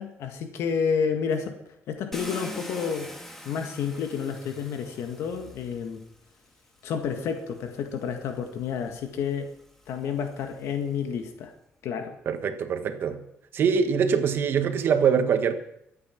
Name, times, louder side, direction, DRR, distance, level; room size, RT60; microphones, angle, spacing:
voice 1, 0.0-1.5 1.9-3.1 3.5-6.1 6.8-9.5 9.9-11.5 11.8-12.2, left 6 dB, 80° left, 1.8 m, -30 dB
Car, 2.1-6.2 7.2-7.3 7.8-11.1, left 1 dB, 5° left, 1.9 m, -44 dB
voice 2, 12.2-13.2 13.5-15.5, right 6 dB, 50° right, 1.5 m, -23 dB
23.5 x 8.7 x 5.9 m
cardioid pair, 150°, 5 cm